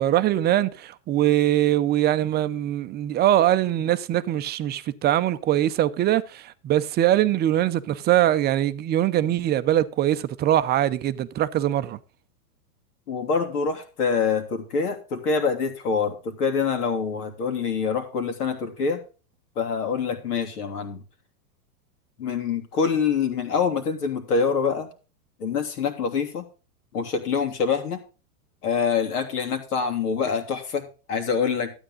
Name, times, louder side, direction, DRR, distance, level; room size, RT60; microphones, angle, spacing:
voice 1, 0.0-12.0, right 12 dB, 20° right, 0.6 m, -22 dB
voice 2, 13.1-19.0 19.6-21.0 22.2-24.9 25.4-26.4 26.9-28.0 28.6-31.7, left 5 dB, 75° left, 2.9 m, -25 dB
13.0 x 9.0 x 3.7 m
hypercardioid pair, 125°, 46 cm